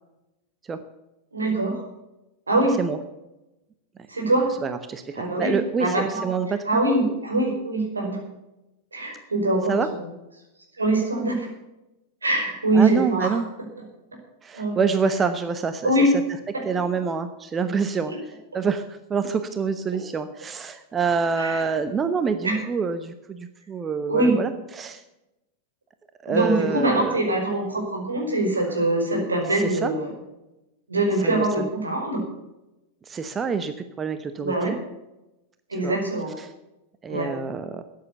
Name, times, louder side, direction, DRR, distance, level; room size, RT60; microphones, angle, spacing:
voice 1, 1.3-1.8 2.5-2.7 4.1-4.5 5.1-6.3 6.6-8.2 8.9-10.1 10.7-11.5 12.2-13.4 14.5-14.8 15.8-16.1 16.5-16.6 21.4-21.6 22.4-22.6 24.1-24.4 26.3-30.1 30.9-32.2 34.4-34.7 35.7-36.3 37.1-37.3, right 2 dB, 80° right, 1 dB, 4.9 m, -23 dB
voice 2, 4.6-6.8 9.7-9.9 12.7-13.5 14.4-15.9 16.6-18.1 18.5-25.0 26.2-27.2 29.5-29.9 31.2-31.7 33.1-34.7 35.8-36.0 36.4-36.5 37.0-37.8, right 5 dB, 20° right, 10 dB, 0.9 m, -26 dB
13.5 x 9.5 x 6.9 m, 0.95 s
figure-of-eight pair, 90°, 0 cm